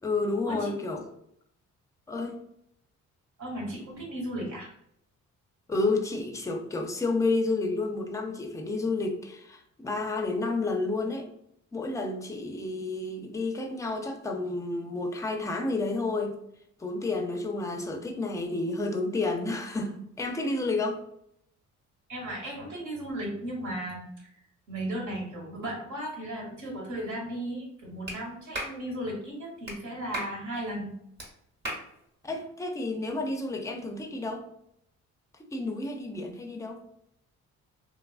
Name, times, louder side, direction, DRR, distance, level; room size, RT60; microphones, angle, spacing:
voice 1, 0.0-1.1 2.1-2.4 5.7-11.3 11.7-16.4 16.8-21.0 32.2-34.5 35.4-36.8, left 3 dB, 10° left, 4 dB, 0.4 m, -30 dB
voice 2, 3.4-4.7 22.1-24.3 24.7-30.9, right 1 dB, 75° right, -1 dB, 1.3 m, -35 dB
Clapping, 28.1-28.2 28.5-28.8 29.7-29.8 30.1-30.3 31.2-31.3 31.6-31.9, right 1 dB, 35° right, 1.1 m, -34 dB
3.0 x 2.3 x 2.3 m, 0.74 s
cardioid pair, 90°, 30 cm